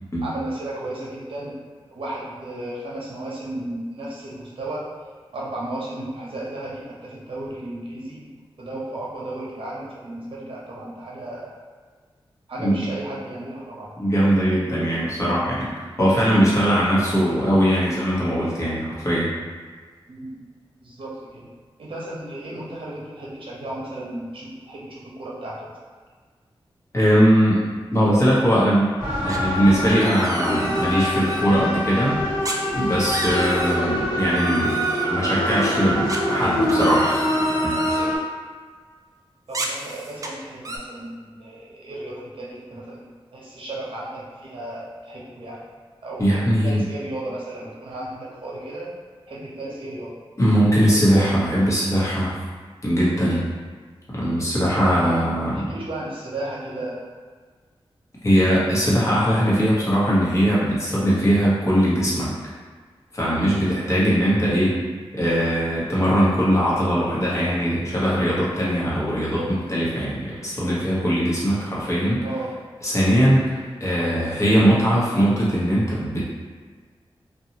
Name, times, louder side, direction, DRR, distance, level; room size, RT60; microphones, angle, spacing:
voice 1, 0.2-1.6 1.9-4.9 5.3-8.3 8.6-11.5 12.5-14.0 17.0-17.4 20.1-20.4 20.8-21.5 21.8-25.7 32.1-32.4 39.5-45.6 46.0-48.9 49.3-50.2 54.6-55.0 55.4-57.0 64.5-64.9 66.8-67.0 72.2-72.5, right 1 dB, 65° right, -5 dB, 0.7 m, -34 dB
voice 2, 14.0-15.7 16.0-19.3 26.9-27.6 27.9-28.9 29.2-32.2 32.7-34.8 35.1-37.3 37.6-37.7 46.2-46.8 50.4-52.4 52.8-53.5 54.1-55.7 58.2-62.3 63.1-64.7 65.1-72.2 72.8-76.2, equal, 30° left, -7 dB, 0.9 m, -20 dB
sound 1, 29.0-38.2, equal, 50° left, 1.2 m, -24 dB
sound 2, 29.3-29.6 29.9-31.4 32.4-32.6 32.9-33.8 34.3-35.0 36.1-38.1 39.5-40.3 40.6-40.8, right 1 dB, 35° right, 0.3 m, -31 dB
2.8 x 2.2 x 2.8 m, 1.5 s
wide cardioid pair, 105°, 10 cm